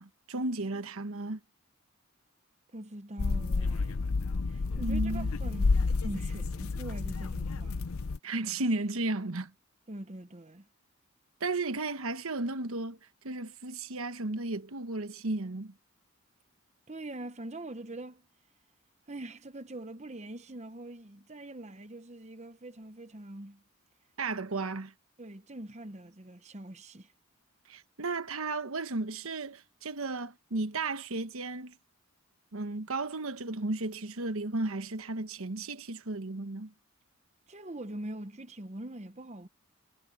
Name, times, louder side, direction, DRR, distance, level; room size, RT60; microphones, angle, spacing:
voice 1, 0.0-1.4 4.8-5.3 8.2-9.5 11.4-13.0 13.2-15.7 24.2-24.9 27.7-31.7 32.5-36.7, right 2 dB, 80° right, 1.2 m, -34 dB
voice 2, 2.7-7.9 9.9-10.7 16.9-18.3 19.1-23.6 25.2-27.1 37.5-39.5, right 1 dB, 30° right, 0.9 m, -43 dB
sound 1, 3.2-8.2, left 3 dB, 80° left, 0.6 m, -30 dB
head